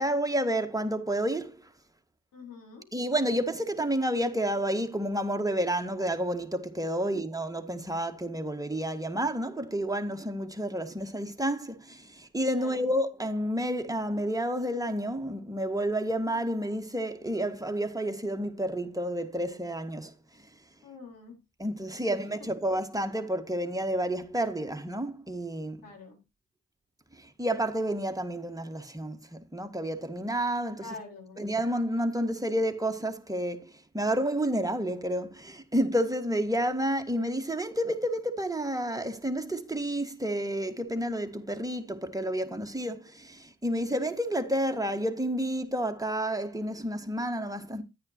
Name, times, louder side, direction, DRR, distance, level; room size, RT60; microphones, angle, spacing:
voice 1, 0.0-1.6 2.9-20.1 21.6-25.8 27.2-30.9 31.4-47.8, right 1 dB, 10° right, 1.7 m, -30 dB
voice 2, 2.3-2.8 12.6-12.9 20.8-21.4 21.9-22.1 25.8-26.2 30.8-31.4, left 3 dB, 80° left, 4.3 m, -45 dB
10.5 x 9.6 x 2.9 m
supercardioid pair, 45°, 32 cm